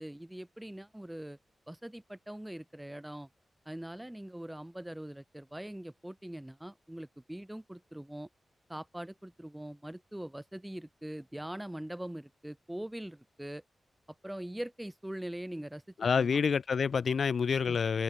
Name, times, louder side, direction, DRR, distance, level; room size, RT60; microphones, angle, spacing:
voice 1, 0.0-1.4 1.7-3.3 3.7-8.3 8.7-13.6 14.2-15.8 16.2-16.4 17.6-17.8, right 1 dB, 5° right, 2.5 m, -42 dB
voice 2, 16.0-18.0, left 6 dB, 60° left, 1.2 m, -28 dB
wide cardioid pair, 115°, 0 cm